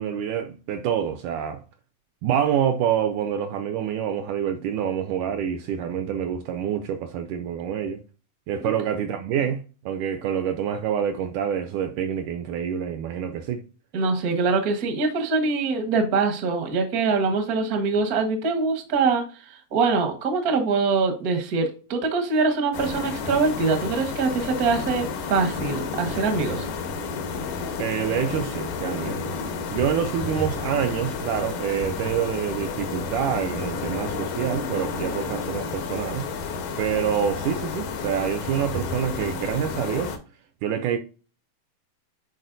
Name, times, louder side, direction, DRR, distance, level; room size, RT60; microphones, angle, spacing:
voice 1, 0.0-1.6 2.2-8.0 8.5-13.6 27.8-29.3 29.7-36.2 36.8-40.2 40.6-41.0, right 8 dB, 80° right, 1.8 m, -27 dB
voice 2, 13.9-26.6, right 4 dB, 65° right, 0.9 m, -23 dB
sound 1, 22.7-40.2, left 5 dB, 70° left, 2.5 m, -31 dB
10.5 x 4.2 x 2.6 m
omnidirectional pair, 4.1 m